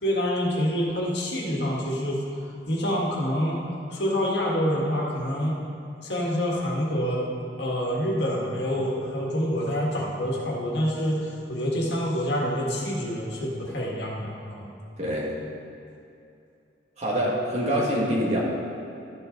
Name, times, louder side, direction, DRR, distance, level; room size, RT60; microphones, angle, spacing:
voice 1, 0.0-3.6 3.9-5.5 6.0-7.2 7.6-14.7, equal, 60° left, -3 dB, 1.8 m, -27 dB
voice 2, 15.0-15.3 17.0-18.4, equal, 35° right, -5 dB, 2.0 m, -25 dB
13.0 x 8.2 x 3.9 m, 2.7 s
head